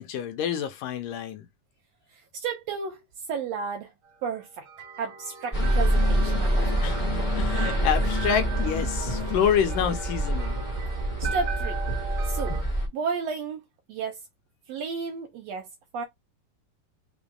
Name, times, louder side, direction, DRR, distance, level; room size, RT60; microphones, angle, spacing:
voice 1, 0.0-1.5 6.8-10.6, left 8 dB, 85° left, 2.4 m, -28 dB
voice 2, 2.1-3.9 4.2-4.6 5.0-7.1 11.2-11.8 12.2-12.6 12.9-13.6 13.9-14.2 14.7-15.7 15.9-16.0, right 5 dB, 80° right, 1.5 m, -33 dB
sound 1, 4.0-12.6, right 5 dB, 50° right, 1.7 m, -39 dB
sound 2, 5.5-12.9, equal, 15° left, 1.3 m, -26 dB
5.9 x 3.5 x 2.2 m
omnidirectional pair, 3.8 m